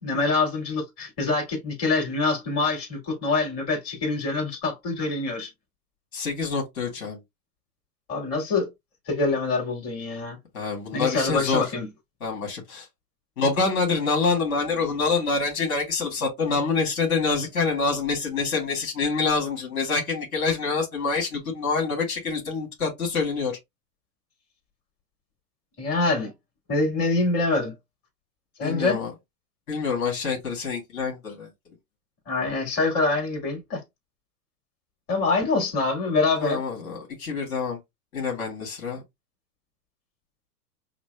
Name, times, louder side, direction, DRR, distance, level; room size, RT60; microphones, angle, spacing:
voice 1, 0.0-5.5 8.1-8.7 9.1-10.4 10.9-11.9 25.8-26.3 26.7-27.7 28.6-29.0 32.3-33.8 35.1-36.6, left 3 dB, 30° left, 2.2 m, -25 dB
voice 2, 6.1-7.2 10.5-11.7 12.2-12.9 13.4-23.6 28.6-29.1 29.7-31.5 36.4-37.8 38.1-39.0, left 4 dB, 65° left, 1.9 m, -26 dB
5.9 x 2.1 x 2.2 m
hypercardioid pair, 120°, 46 cm